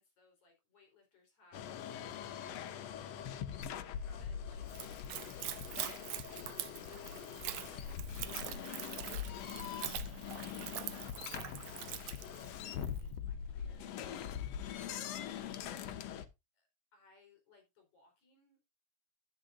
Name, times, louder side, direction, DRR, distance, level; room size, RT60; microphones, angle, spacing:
voice 1, 0.0-5.1 5.5-16.0 16.5-18.7, left 3 dB, 50° left, 5.6 m, -65 dB
sound 1, 1.5-16.3, left 9 dB, 80° left, 1.5 m, -43 dB
Splash splatter / Trickle dribble, 4.7-13.0, right 13 dB, 80° right, 1.6 m, -44 dB
11.5 x 10.0 x 2.6 m
omnidirectional pair, 4.3 m